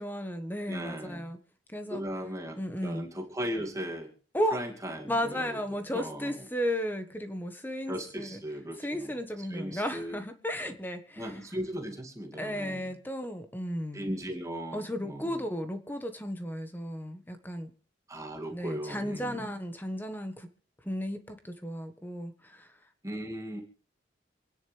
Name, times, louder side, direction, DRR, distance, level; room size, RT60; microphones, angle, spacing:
voice 1, 0.0-1.4 1.7-2.0 2.6-3.1 4.3-4.6 5.1-8.4 8.8-11.4 12.4-14.1 14.7-17.7 18.5-20.5 20.8-22.7, equal, 10° left, 7 dB, 1.4 m, -34 dB
voice 2, 0.7-1.3 1.9-4.1 4.5-5.6 5.9-6.5 7.9-10.2 11.2-12.9 13.9-15.4 18.1-19.5 23.0-23.6, equal, 15° right, 1 dB, 2.4 m, -37 dB
27.0 x 10.0 x 3.4 m, 0.43 s
head